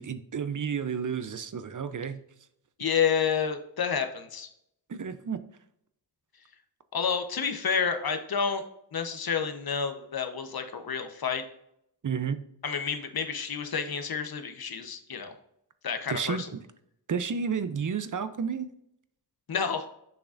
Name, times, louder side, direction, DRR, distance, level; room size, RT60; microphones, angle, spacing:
voice 1, 0.0-2.2 4.9-5.4 12.0-12.4 16.1-16.6 17.1-18.7, right 6 dB, 50° right, 12 dB, 0.7 m, -31 dB
voice 2, 2.8-4.5 6.9-8.6 8.9-11.4 12.6-15.3 15.8-16.5 19.5-19.8, left 6 dB, 60° left, 7 dB, 1.0 m, -29 dB
6.9 x 5.9 x 2.5 m, 0.75 s
cardioid pair, 55°, 40 cm